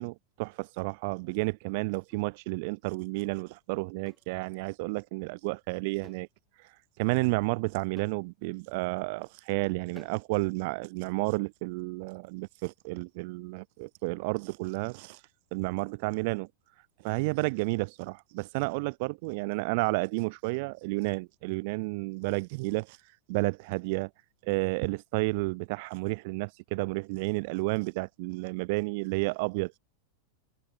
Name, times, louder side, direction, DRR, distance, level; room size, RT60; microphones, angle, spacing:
voice 1, 0.0-6.3 7.0-15.2 15.5-16.5 17.0-23.0 23.3-24.1 24.4-29.8, right 27 dB, 50° right, 0.3 m, -31 dB
sound 1, 2.1-2.3 4.0-4.3 6.0-6.3 6.6-6.7 8.0-8.3 10.0-10.3, left 3 dB, 10° left, 0.5 m, -55 dB
figure-of-eight pair, 90°, 0 cm